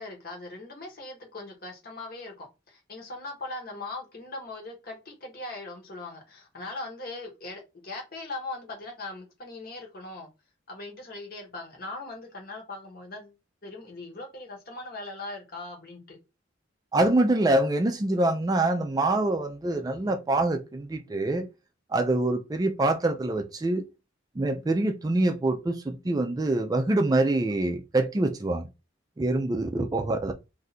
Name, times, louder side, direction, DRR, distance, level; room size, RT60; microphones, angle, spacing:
voice 1, 0.0-10.3 10.7-13.3 13.6-16.2, left 2 dB, 50° left, 1.2 m, -40 dB
voice 2, 16.9-21.5 21.9-23.8 24.4-28.7 29.2-30.3, right 2 dB, 20° right, 0.3 m, -25 dB
2.6 x 2.4 x 4.1 m
head